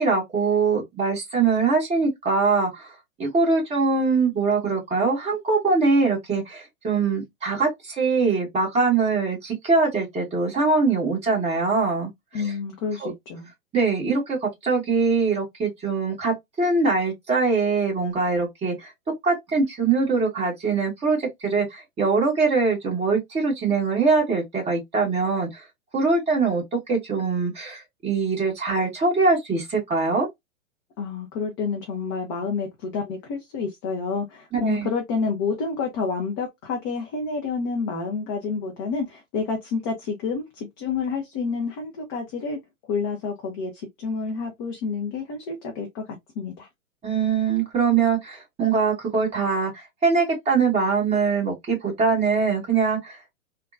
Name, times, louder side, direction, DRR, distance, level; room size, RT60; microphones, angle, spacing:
voice 1, 0.0-12.4 13.0-13.1 13.7-18.9 19.2-25.6 25.9-30.3 34.5-34.9 47.0-53.2, right 4 dB, 15° right, 1.5 m, -23 dB
voice 2, 12.3-13.5 31.0-46.0 46.4-46.7, left 4 dB, 20° left, 0.4 m, -29 dB
3.4 x 2.2 x 2.4 m
figure-of-eight pair, 115°, 41 cm